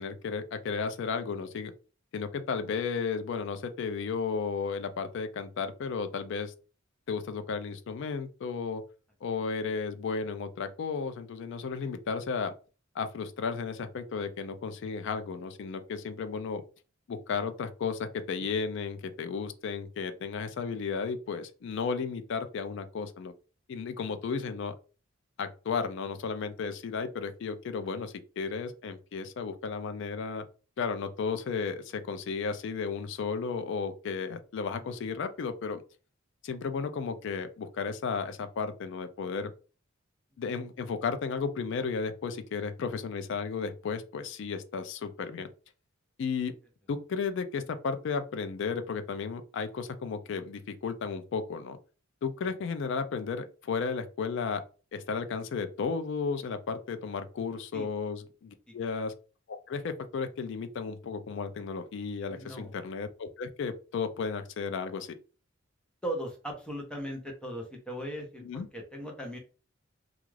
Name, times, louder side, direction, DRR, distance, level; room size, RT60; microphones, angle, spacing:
voice 1, 0.0-1.7 2.1-6.5 7.1-8.8 9.2-12.5 12.9-16.6 17.1-23.3 23.7-24.7 25.4-30.5 30.8-35.8 36.4-39.5 40.4-45.5 46.2-46.5 46.9-51.8 52.2-54.6 54.9-59.1 59.5-65.1 68.4-68.7, left 5 dB, 60° left, 0.3 m, -34 dB
voice 2, 62.3-62.7 66.0-69.4, equal, 5° left, 0.6 m, -38 dB
2.4 x 2.3 x 3.1 m
head